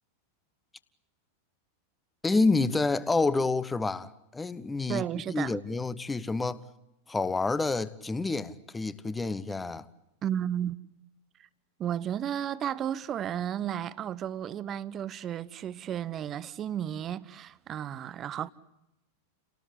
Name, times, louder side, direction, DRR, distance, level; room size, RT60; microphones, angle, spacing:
voice 1, 2.2-6.6 7.1-9.9, left 3 dB, 10° left, 1.1 m, -28 dB
voice 2, 4.9-5.6 10.2-10.8 11.8-18.5, right 10 dB, 30° right, 0.9 m, -33 dB
29.5 x 18.5 x 8.4 m
figure-of-eight pair, 90°, 0 cm